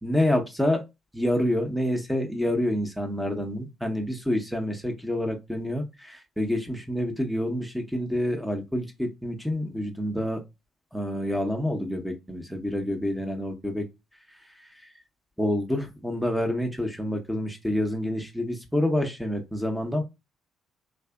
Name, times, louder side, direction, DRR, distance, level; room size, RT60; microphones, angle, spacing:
voice 1, 0.0-0.8 1.1-10.4 10.9-13.8 14.3-14.9 15.4-20.0, left 1 dB, ahead, 0.9 m, -28 dB
3.7 x 3.2 x 2.3 m
hypercardioid pair, 45°, 0 cm